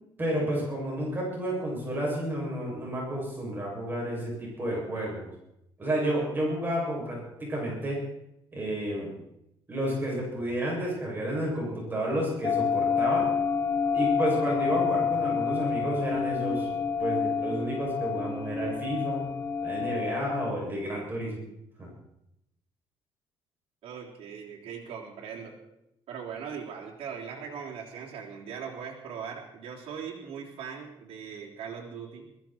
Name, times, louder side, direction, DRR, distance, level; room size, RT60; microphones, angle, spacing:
voice 1, 0.2-5.3 5.8-8.0 8.5-9.1 9.7-13.3 13.9-16.7 17.0-19.2 19.6-21.5 21.8-21.9, right 1 dB, 20° right, -4 dB, 7.3 m, -31 dB
sound 1, 12.4-20.5, left 6 dB, 30° left, 1.1 m, -28 dB
voice 2, 23.8-25.5 26.1-32.3, right 7 dB, 75° right, -4 dB, 3.7 m, -40 dB
21.0 x 15.0 x 4.5 m, 0.82 s
cardioid pair, 130°, 10 cm